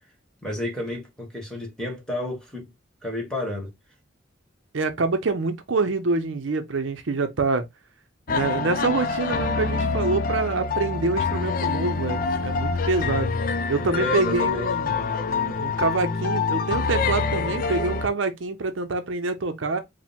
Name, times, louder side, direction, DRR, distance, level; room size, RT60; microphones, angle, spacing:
voice 1, 0.4-2.7 3.0-3.7 13.9-14.7, left 1 dB, 5° left, 1.5 m, -31 dB
voice 2, 4.7-7.6 8.3-13.3 13.7-19.8, right 3 dB, 75° right, 0.6 m, -26 dB
sound 1, 8.3-18.1, left 4 dB, 45° left, 0.4 m, -26 dB
4.9 x 2.2 x 3.5 m
head